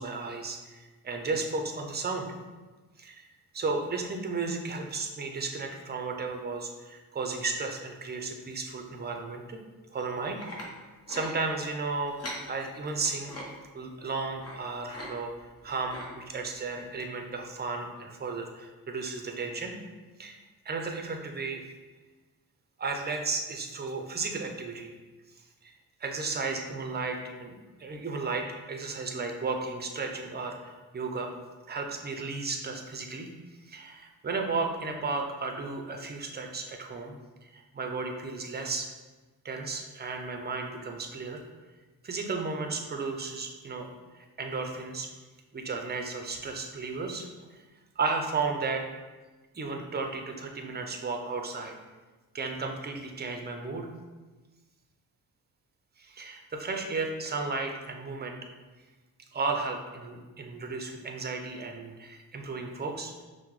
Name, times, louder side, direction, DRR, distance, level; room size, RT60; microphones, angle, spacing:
voice 1, 0.0-2.4 3.0-3.3 3.5-9.6 9.9-10.4 11.1-13.3 13.7-19.8 20.2-20.4 20.6-21.6 22.8-24.9 25.4-25.7 26.0-31.3 31.7-33.3 33.6-37.1 37.4-38.9 39.4-41.4 42.0-43.9 44.1-45.1 45.5-47.6 48.0-48.8 49.5-51.7 52.3-53.9 56.0-58.4 59.3-63.2, right 4 dB, 25° right, 3 dB, 0.6 m, -34 dB
sound 1, 9.9-10.7 11.1-11.3 12.1-12.4 12.9-13.4 14.4-14.6 14.9-15.1 15.4-16.1 16.7-16.8 17.3-17.4, left 1 dB, 40° left, 1.1 m, -41 dB
5.7 x 2.2 x 3.1 m, 1.2 s
cardioid pair, 75°, 37 cm